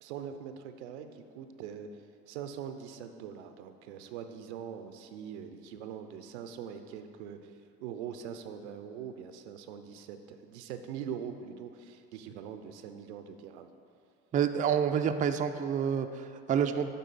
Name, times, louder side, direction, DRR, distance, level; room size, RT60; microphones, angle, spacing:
voice 1, 0.0-1.9 2.3-7.5 7.8-13.7, right 8 dB, 85° right, 8 dB, 0.5 m, -42 dB
voice 2, 14.3-16.9, right 8 dB, 25° right, 7 dB, 0.3 m, -28 dB
9.2 x 3.7 x 4.0 m, 2.4 s
hypercardioid pair, 70°, 33 cm